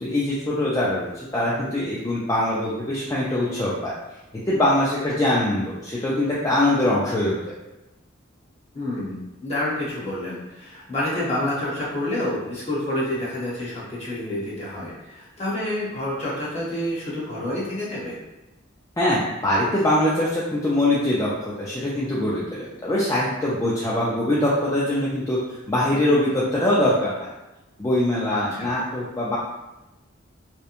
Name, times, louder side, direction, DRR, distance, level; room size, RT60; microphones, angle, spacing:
voice 1, 0.0-3.9 4.5-7.5 19.0-27.1 27.8-29.4, left 1 dB, 15° left, -8 dB, 0.3 m, -23 dB
voice 2, 8.7-9.2 9.4-18.2 28.3-28.7, left 1 dB, 30° left, -7 dB, 0.8 m, -28 dB
2.9 x 2.1 x 2.4 m, 0.99 s
head